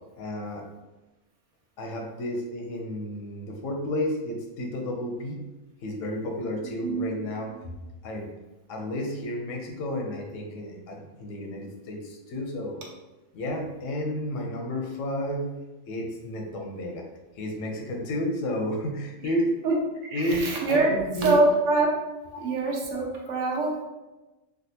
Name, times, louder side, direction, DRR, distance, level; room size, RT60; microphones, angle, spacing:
voice 1, 0.2-0.7 1.8-5.4 5.8-7.7 8.0-8.3 8.7-12.8 13.3-15.5 15.9-17.0 17.4-19.5 20.1-20.4 20.7-21.4 22.3-22.5 23.6-23.7, left 1 dB, 90° left, 1 dB, 1.0 m, -31 dB
voice 2, 20.1-20.9 21.2-21.9 22.4-23.7, right 3 dB, 75° right, -1 dB, 1.1 m, -24 dB
3.4 x 2.4 x 2.7 m, 1.1 s
omnidirectional pair, 1.3 m